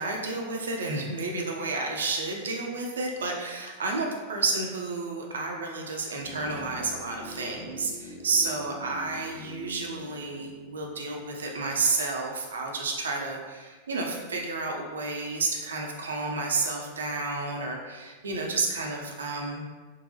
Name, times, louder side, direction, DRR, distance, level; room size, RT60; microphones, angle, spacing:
voice 1, 0.0-19.6, right 3 dB, 70° right, 1 dB, 0.5 m, -31 dB
sound 1, 6.2-12.2 12.5-12.6, right 2 dB, 20° left, 0.8 m, -45 dB
3.8 x 2.3 x 2.6 m, 1.4 s
figure-of-eight pair, 90°, 0 cm